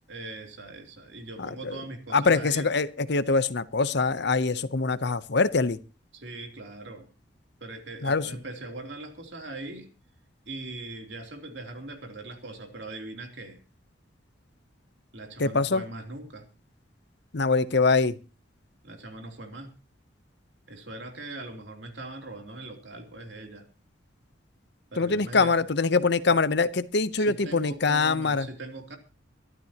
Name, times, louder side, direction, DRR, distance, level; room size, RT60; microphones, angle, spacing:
voice 1, 0.1-2.7 6.1-7.1 7.6-9.9 10.4-13.6 15.1-16.5 18.8-19.7 20.7-23.7 24.9-25.6 27.2-29.0, right 2 dB, 70° right, 4 dB, 3.2 m, -40 dB
voice 2, 1.4-1.8 2.1-5.8 8.0-8.3 15.4-15.8 17.3-18.2 25.0-28.5, left 4 dB, 65° left, 15 dB, 0.8 m, -24 dB
23.5 x 12.5 x 2.9 m, 0.31 s
head